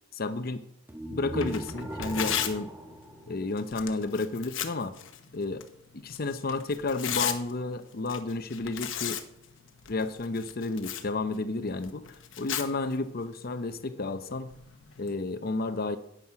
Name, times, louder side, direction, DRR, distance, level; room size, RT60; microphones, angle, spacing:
voice 1, 0.1-0.6 1.1-2.7 3.3-4.9 5.3-5.6 5.9-9.2 9.9-12.0 12.4-14.5 15.0-16.0, left 3 dB, 50° left, 10 dB, 0.7 m, -31 dB
sound 1, 0.9-4.0, equal, 10° right, 1.2 m, -38 dB
Tearing, 1.3-15.1, left 9 dB, 70° left, 1.0 m, -38 dB
9.6 x 9.1 x 5.8 m, 0.76 s
head